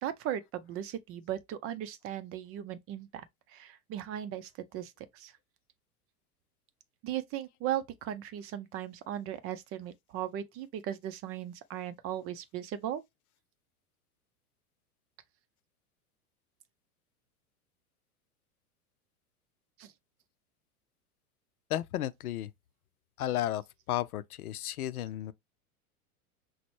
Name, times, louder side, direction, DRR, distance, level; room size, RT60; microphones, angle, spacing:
voice 1, 0.0-5.3 7.0-13.0 19.8-19.9, right 11 dB, 30° right, 0.6 m, -37 dB
voice 2, 21.7-22.5 23.2-23.6 23.9-25.3, left 13 dB, 75° left, 0.6 m, -33 dB
5.9 x 2.2 x 3.2 m
hypercardioid pair, 95°, 45 cm